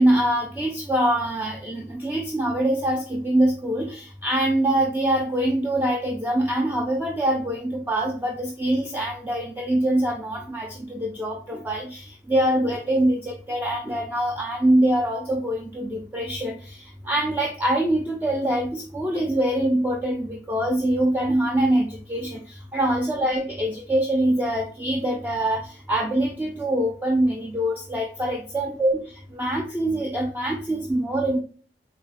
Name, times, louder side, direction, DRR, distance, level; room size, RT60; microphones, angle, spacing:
voice 1, 0.0-29.0 29.3-31.4, right 1 dB, 10° right, 0 dB, 0.4 m, -24 dB
3.9 x 3.1 x 2.4 m, 0.43 s
head